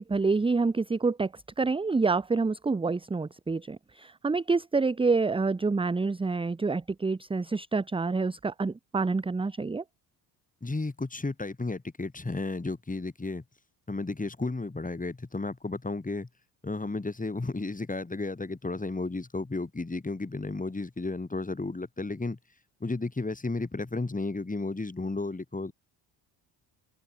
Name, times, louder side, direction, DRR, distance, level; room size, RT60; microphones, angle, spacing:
voice 1, 0.0-9.8, right 4 dB, 10° right, 0.7 m, -27 dB
voice 2, 10.6-13.4 13.9-16.3 16.6-22.4 22.8-25.7, left 3 dB, 15° left, 5.9 m, -33 dB
supercardioid pair, 80°, 47 cm